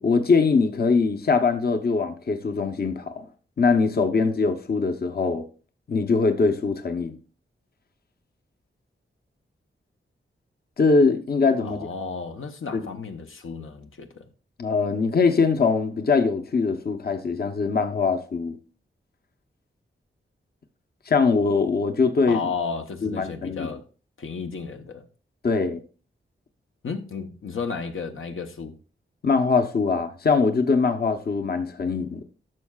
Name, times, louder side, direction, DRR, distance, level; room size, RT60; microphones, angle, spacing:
voice 1, 0.0-3.2 3.6-5.4 5.9-7.2 10.8-11.9 12.7-12.9 14.6-18.6 21.1-22.4 23.0-23.7 25.4-25.8 29.2-32.2, left 4 dB, 50° left, 0.8 m, -22 dB
voice 2, 11.6-14.3 22.3-23.8 24.2-25.0 26.8-28.7, left 5 dB, 80° left, 0.9 m, -33 dB
12.0 x 6.4 x 2.3 m
wide cardioid pair, 115°, 21 cm